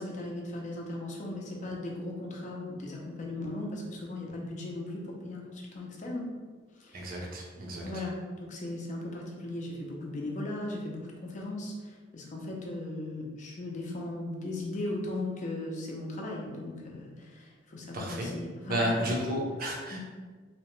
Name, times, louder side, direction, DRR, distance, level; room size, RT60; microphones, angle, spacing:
voice 1, 0.0-6.2 6.8-7.3 7.6-19.0 19.9-20.0, left 2 dB, 40° left, -1 dB, 0.5 m, -37 dB
voice 2, 6.9-7.8 17.9-18.3 18.7-20.0, equal, 45° right, -1 dB, 0.6 m, -32 dB
2.8 x 2.1 x 3.0 m, 1.4 s
head